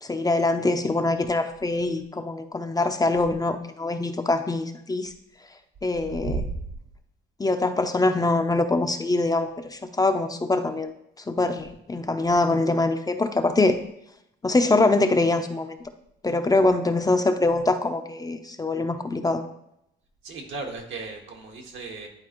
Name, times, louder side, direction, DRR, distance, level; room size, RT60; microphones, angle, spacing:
voice 1, 0.0-5.1 5.8-6.4 7.4-10.9 11.3-13.8 14.4-15.8 16.2-19.4, left 2 dB, 20° left, 7 dB, 0.5 m, -23 dB
voice 2, 6.2-6.6 20.2-22.1, right 3 dB, 75° right, 2 dB, 1.5 m, -34 dB
10.5 x 4.2 x 3.0 m, 0.78 s
cardioid pair, 90°, 20 cm